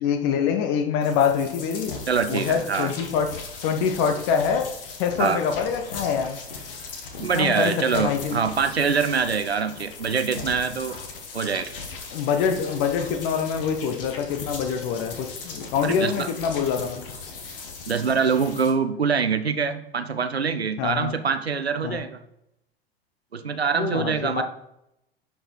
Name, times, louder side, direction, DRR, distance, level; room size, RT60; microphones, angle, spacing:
voice 1, 0.0-1.9 2.3-3.3 3.6-4.7 5.0-6.4 7.2-8.4 12.1-17.0 20.8-21.2 21.8-22.0 23.7-24.4, left 7 dB, 45° left, 6 dB, 1.3 m, -25 dB
sound 1, 1.0-18.7, left 4 dB, 60° left, 1.6 m, -39 dB
voice 2, 2.1-2.9 5.2-5.4 7.2-11.0 11.3-11.7 15.8-16.3 17.9-22.2 23.3-24.4, right 5 dB, 85° right, 10 dB, 0.7 m, -24 dB
10.5 x 4.7 x 4.5 m, 0.83 s
figure-of-eight pair, 85°, 31 cm